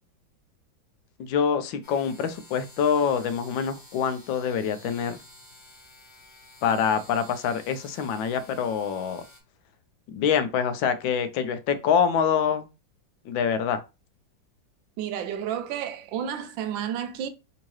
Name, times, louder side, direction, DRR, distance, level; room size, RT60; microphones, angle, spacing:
voice 1, 1.2-5.2 6.6-9.2 10.1-12.7 13.3-13.8, left 7 dB, 85° left, 1.3 m, -25 dB
sound 1, 1.8-9.4, left 1 dB, 40° left, 1.1 m, -51 dB
voice 2, 15.0-17.3, right 9 dB, 80° right, 1.3 m, -31 dB
3.6 x 2.9 x 3.0 m
omnidirectional pair, 2.1 m